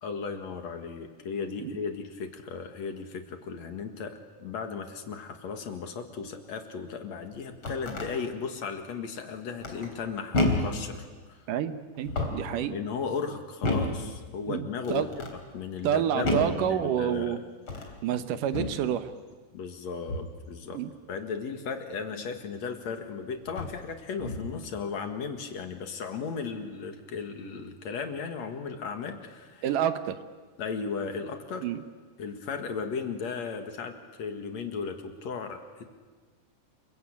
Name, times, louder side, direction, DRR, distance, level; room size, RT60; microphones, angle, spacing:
voice 1, 0.0-11.4 12.5-15.1 15.5-17.4 17.8-18.3 19.5-20.8 21.1-29.6 30.6-31.7 32.2-33.9 34.2-35.8, left 5 dB, 60° left, 6 dB, 3.0 m, -36 dB
sound 1, 7.3-8.1 9.6-10.0 10.3-10.8 12.0-12.5 13.6-14.1 14.8-15.4 16.2-16.6 17.6-18.0 18.5-18.8 20.1-20.4 22.5-22.6 23.5-23.8 24.2-24.6, left 2 dB, 40° left, 4.4 m, -30 dB
voice 2, 11.5-12.8 14.5-15.1 15.8-17.4 18.0-19.1 20.7-20.9 29.6-30.2 31.6-31.8, right 10 dB, 90° right, 10 dB, 2.8 m, -28 dB
28.5 x 22.5 x 8.7 m, 1.4 s
omnidirectional pair, 3.6 m